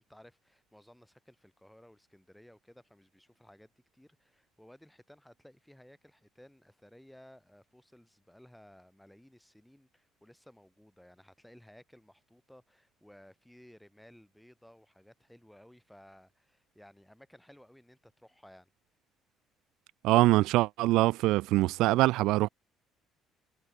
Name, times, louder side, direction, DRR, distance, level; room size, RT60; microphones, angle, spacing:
voice 1, 0.0-18.7, equal, 5° left, 7.6 m, -57 dB
voice 2, 20.0-22.5, right 18 dB, 80° right, 0.5 m, -24 dB
cardioid pair, 120°, 0 cm